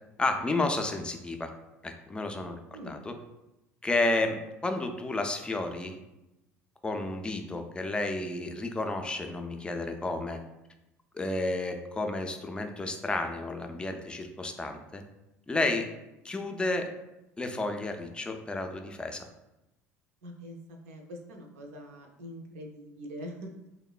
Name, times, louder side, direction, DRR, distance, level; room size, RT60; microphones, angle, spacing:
voice 1, 0.2-1.5 1.8-2.5 2.9-3.1 3.8-6.0 6.8-10.4 11.1-15.0 15.5-15.9 16.2-16.9 17.4-19.3, left 2 dB, 10° left, 5 dB, 0.3 m, -31 dB
voice 2, 2.7-3.0 20.2-23.7, equal, 75° right, 2 dB, 0.4 m, -44 dB
3.0 x 2.0 x 2.3 m, 0.94 s
hypercardioid pair, 65°, 8 cm